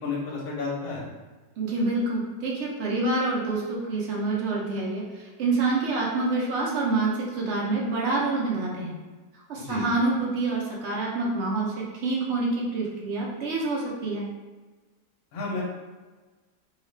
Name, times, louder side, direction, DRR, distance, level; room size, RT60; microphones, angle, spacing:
voice 1, 0.0-1.0 9.5-9.8 15.3-15.6, left 4 dB, 60° left, -3 dB, 1.1 m, -31 dB
voice 2, 1.6-9.0 9.5-14.3, right 3 dB, 80° right, -3 dB, 0.6 m, -27 dB
2.8 x 2.4 x 3.1 m, 1.3 s
omnidirectional pair, 1.8 m